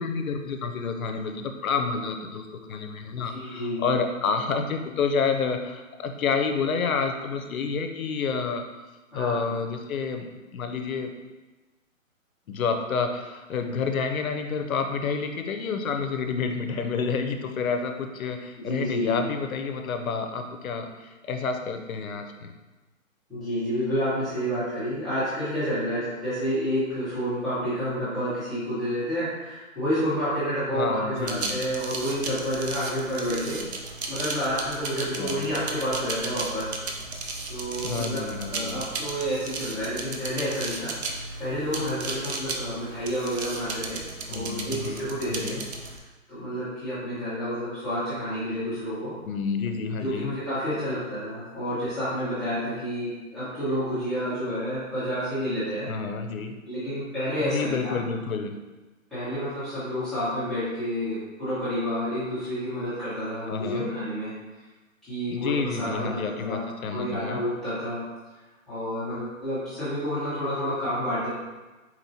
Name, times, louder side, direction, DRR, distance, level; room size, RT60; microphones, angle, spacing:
voice 1, 0.0-8.6 9.1-10.3 10.5-11.1 12.5-22.5 30.7-31.5 35.2-35.5 37.8-38.8 44.3-45.7 49.2-50.3 55.9-56.5 57.4-58.6 63.5-63.9 65.3-67.4, left 5 dB, 85° left, 6 dB, 0.6 m, -29 dB
voice 2, 3.3-3.8 9.1-9.6 18.6-19.2 23.3-33.6 34.1-36.7 37.5-44.0 44.3-45.6 46.3-49.2 49.9-55.9 56.7-58.0 59.1-64.3 65.0-66.6 66.9-68.1 68.7-71.3, equal, ahead, -18 dB, 1.0 m, -29 dB
sound 1, 31.2-46.0, right 3 dB, 50° right, 0.6 m, -35 dB
4.3 x 2.9 x 2.7 m, 1.2 s
hypercardioid pair, 155°, 41 cm